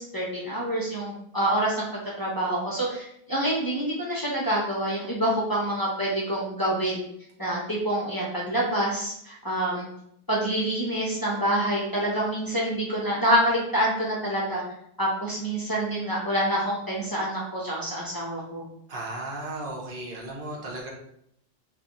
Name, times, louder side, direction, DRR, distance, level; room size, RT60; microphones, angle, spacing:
voice 1, 0.0-1.9 2.2-7.0 7.4-9.9 10.3-14.6 15.0-18.7, right 1 dB, 25° left, -5 dB, 0.7 m, -27 dB
voice 2, 18.9-20.9, right 2 dB, 60° right, -2 dB, 0.9 m, -35 dB
3.9 x 2.4 x 2.9 m, 0.74 s
omnidirectional pair, 1.0 m